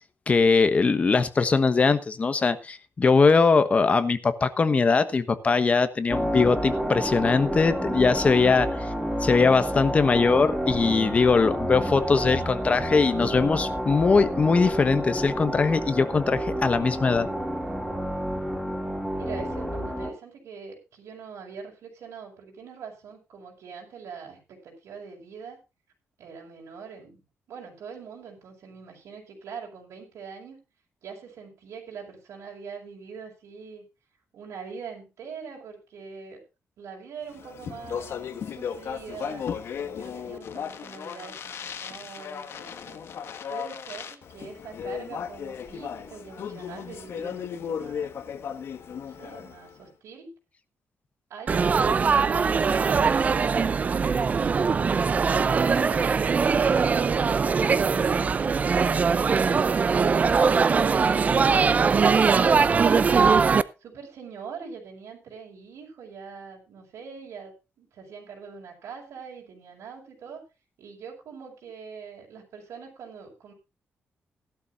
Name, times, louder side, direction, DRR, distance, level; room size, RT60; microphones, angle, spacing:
voice 1, 0.3-8.9 9.2-17.3, left 4 dB, 30° left, 11 dB, 1.2 m, -21 dB
sound 1, 6.1-20.1, equal, 5° right, 2.7 m, -29 dB
voice 2, 19.1-25.6 26.2-27.2 27.5-30.6 31.0-33.9 34.3-36.5 36.8-39.5 39.8-43.0 43.5-48.1 48.9-50.3 51.3-54.3 63.8-70.4 70.8-73.5, right 6 dB, 80° right, -1 dB, 5.5 m, -43 dB
Speech, 37.3-49.7, left 7 dB, 60° left, 1.5 m, -36 dB
Laughter / Chatter / Crowd, 51.5-63.6, right 5 dB, 30° right, 0.5 m, -21 dB
17.0 x 12.0 x 2.6 m, 0.28 s
wide cardioid pair, 165°, 5 cm